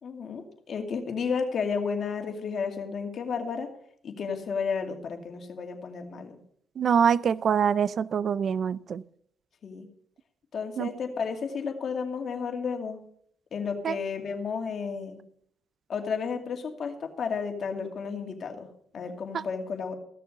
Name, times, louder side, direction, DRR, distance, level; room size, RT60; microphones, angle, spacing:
voice 1, 0.0-3.7 4.0-6.4 9.6-9.9 10.5-13.0 13.5-15.2 15.9-19.9, left 5 dB, 55° left, 5 dB, 2.3 m, -32 dB
voice 2, 6.8-9.0 10.8-10.9 13.8-14.0 19.3-19.4, right 7 dB, 55° right, 19 dB, 0.5 m, -24 dB
15.0 x 6.8 x 6.6 m, 0.64 s
cardioid pair, 90°, 0 cm